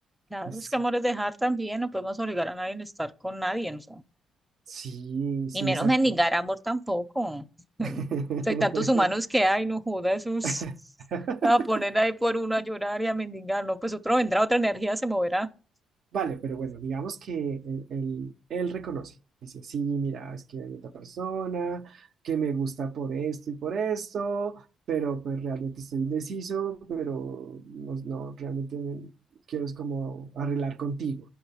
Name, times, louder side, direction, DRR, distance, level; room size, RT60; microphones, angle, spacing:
voice 1, 0.3-4.0 5.5-7.5 7.8-8.0 8.5-10.6 11.4-15.5, right 1 dB, 5° right, 0.6 m, -26 dB
voice 2, 4.7-6.2 7.8-9.1 10.4-10.7 11.1-11.7 16.1-19.1 19.4-29.1 29.5-31.2, right 6 dB, 65° right, 0.6 m, -32 dB
9.9 x 5.8 x 5.6 m
cardioid pair, 90°, 0 cm